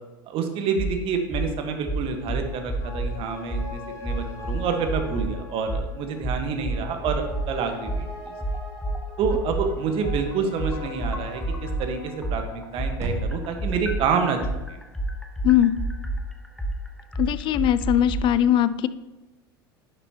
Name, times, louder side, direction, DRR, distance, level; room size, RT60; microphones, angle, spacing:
voice 1, 0.3-8.3 9.2-14.4, right 5 dB, 50° right, 5 dB, 1.4 m, -28 dB
sound 1, 0.8-0.9 1.3-1.5 1.9-3.1 3.5-3.7 4.0-5.3 5.7-5.9 6.2-7.5 7.9-11.9 12.2-18.2, right 2 dB, 5° left, 0.9 m, -28 dB
sound 2, 2.2-15.0 15.4-15.5, left 3 dB, 65° left, 2.1 m, -44 dB
sound 3, 9.4-17.3, right 2 dB, 20° right, 1.3 m, -40 dB
voice 2, 15.4-15.8 17.2-18.9, left 11 dB, 40° left, 15 dB, 0.4 m, -20 dB
10.5 x 6.7 x 2.9 m, 1.1 s
hypercardioid pair, 85°, 12 cm